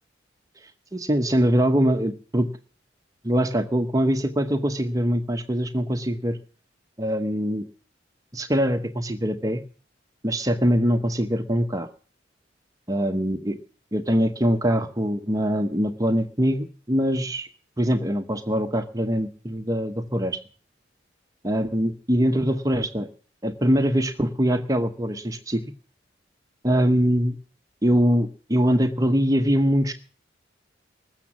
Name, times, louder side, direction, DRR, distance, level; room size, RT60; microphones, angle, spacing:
voice 1, 0.6-2.5 3.2-6.4 7.0-7.6 8.3-9.6 10.2-11.9 12.9-13.6 13.9-17.5 17.8-20.4 21.4-23.1 23.4-25.6 26.6-27.4 27.8-29.9, equal, 20° right, 7 dB, 0.9 m, -23 dB
20.0 x 7.3 x 7.3 m, 0.41 s
head